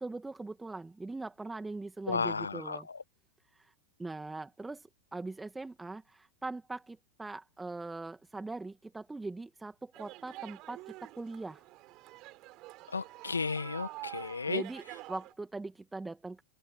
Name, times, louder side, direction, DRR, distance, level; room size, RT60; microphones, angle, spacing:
voice 1, 0.0-2.9 3.6-3.7 4.0-11.6 14.5-14.8 15.1-16.4, right 3 dB, 10° right, 2.4 m, -41 dB
voice 2, 2.1-3.0 12.9-14.6, left 4 dB, 80° left, 1.7 m, -34 dB
sound 1, 9.9-15.3, right 19 dB, 40° right, 5.5 m, -47 dB
open air
figure-of-eight pair, 90°, 0 cm